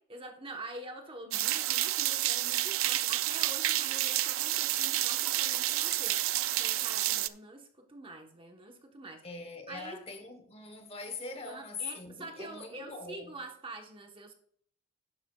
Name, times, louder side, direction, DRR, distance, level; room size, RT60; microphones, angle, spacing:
voice 1, 0.0-6.2 6.6-9.2 9.7-10.0 11.5-14.3, right 2 dB, 25° right, 1.1 m, -46 dB
sound 1, 1.3-7.3, right 15 dB, 65° right, 0.4 m, -29 dB
voice 2, 9.2-13.3, left 4 dB, 25° left, 1.1 m, -42 dB
11.5 x 9.1 x 2.3 m
head